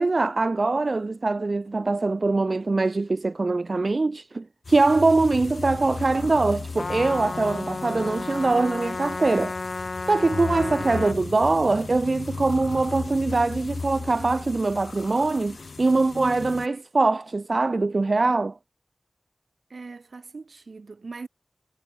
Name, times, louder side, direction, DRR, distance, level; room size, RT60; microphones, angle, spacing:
voice 1, 0.0-9.6 10.0-18.6, right 3 dB, 60° right, 0.3 m, -23 dB
sound 1, 4.6-16.7, left 4 dB, 90° left, 1.4 m, -36 dB
Trumpet, 6.8-11.2, left 3 dB, 65° left, 0.7 m, -33 dB
voice 2, 19.7-21.3, right 4 dB, 85° right, 1.8 m, -40 dB
wide cardioid pair, 65°, 0 cm